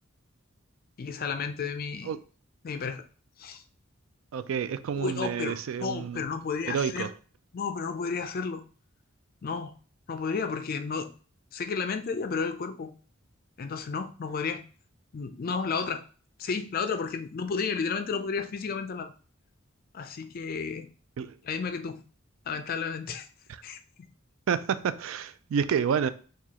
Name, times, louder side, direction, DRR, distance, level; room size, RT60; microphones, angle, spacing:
voice 1, 1.0-2.1 2.6-3.0 3.4-3.6 4.9-7.1 7.5-8.6 9.4-9.7 10.1-11.1 11.5-12.9 13.6-14.6 15.1-16.0 16.4-19.1 19.9-20.9 21.4-22.0 22.5-23.3 23.6-23.8, left 5 dB, 45° left, 0.4 m, -32 dB
voice 2, 4.3-6.2 6.7-7.1 21.2-21.4 23.5-23.6 24.5-26.1, right 7 dB, 80° right, 0.3 m, -29 dB
4.6 x 2.3 x 2.8 m
head